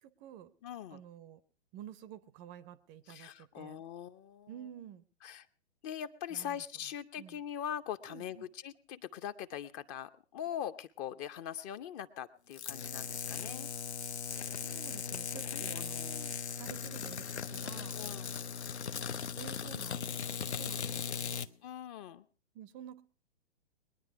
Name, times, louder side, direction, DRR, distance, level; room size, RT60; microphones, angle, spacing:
voice 1, 0.0-0.5 0.9-1.4 1.7-3.8 4.5-5.0 6.3-6.6 7.2-7.4 8.1-8.5 14.5-18.0 19.4-21.4 22.5-23.0, right 10 dB, 25° right, 17 dB, 0.6 m, -51 dB
voice 2, 0.6-1.0 3.1-4.5 5.2-5.5 5.8-13.7 15.5-16.4 17.9-18.3 21.6-22.2, left 9 dB, 30° left, 11 dB, 0.7 m, -42 dB
sound 1, 12.5-21.5, left 7 dB, 80° left, 0.8 m, -38 dB
21.5 x 10.0 x 4.6 m, 0.41 s
figure-of-eight pair, 115°, 33 cm